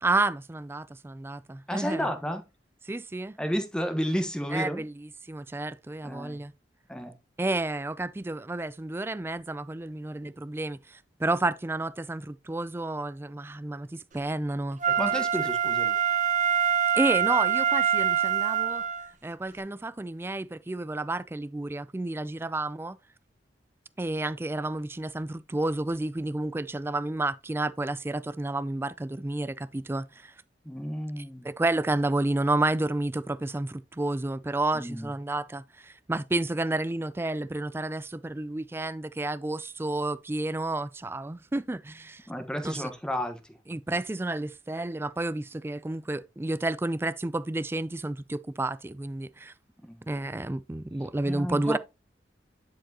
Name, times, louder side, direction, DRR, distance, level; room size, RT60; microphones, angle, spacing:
voice 1, 0.0-2.1 2.8-3.4 4.5-6.5 7.4-14.8 16.9-18.8 19.2-23.0 24.0-30.3 31.2-42.3 42.6-42.9 43.7-49.5 50.1-51.8, right 2 dB, 15° right, 0.3 m, -31 dB
voice 2, 1.7-2.4 3.4-4.9 6.0-6.4 6.9-7.1 14.9-16.0 30.6-31.5 34.7-35.1 42.3-43.6 49.8-50.1 51.2-51.8, equal, 5° left, 1.1 m, -32 dB
Wind instrument woodwind instrument, 14.8-19.1 19.6-19.7, right 8 dB, 45° right, 0.7 m, -25 dB
10.0 x 4.7 x 2.8 m
head